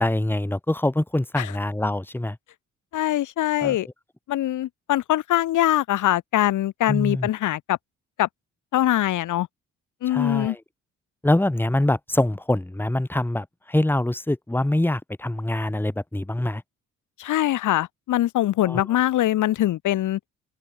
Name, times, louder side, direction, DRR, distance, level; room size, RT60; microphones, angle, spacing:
voice 1, 0.0-2.4 3.6-3.8 6.9-7.3 10.1-10.6 11.2-16.6 18.6-18.9, left 1 dB, 5° left, 2.3 m, -24 dB
voice 2, 2.9-3.9 4.3-7.8 8.2-8.3 8.7-9.5 10.0-10.5 17.2-20.2, left 13 dB, 80° left, 3.1 m, -23 dB
cardioid pair, 90°, 30 cm